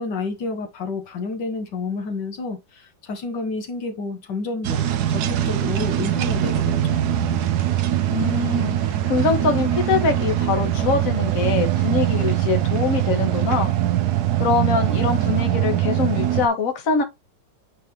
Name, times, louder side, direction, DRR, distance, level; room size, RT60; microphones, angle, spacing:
voice 1, 0.0-4.8 5.1-7.0, left 3 dB, 70° left, 1.8 m, -30 dB
sound 1, 4.6-16.5, right 11 dB, 65° right, 1.2 m, -22 dB
sound 2, 5.0-15.5, right 11 dB, 90° right, 1.4 m, -35 dB
voice 2, 8.1-13.7 14.4-17.0, left 4 dB, 50° left, 1.7 m, -23 dB
9.3 x 3.5 x 2.9 m
omnidirectional pair, 2.0 m